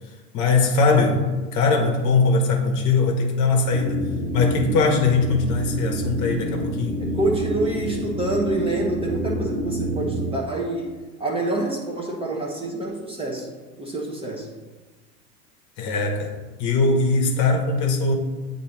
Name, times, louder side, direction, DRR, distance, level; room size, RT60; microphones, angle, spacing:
voice 1, 0.3-4.0 4.3-7.0 15.8-18.1, left 3 dB, 40° left, 2 dB, 1.0 m, -21 dB
sound 1, 3.7-10.4, right 1 dB, 75° right, 1.0 m, -28 dB
voice 2, 7.0-13.5 13.8-14.5, right 2 dB, 10° right, -1 dB, 0.8 m, -27 dB
8.3 x 2.8 x 4.4 m, 1.3 s
figure-of-eight pair, 85°, 47 cm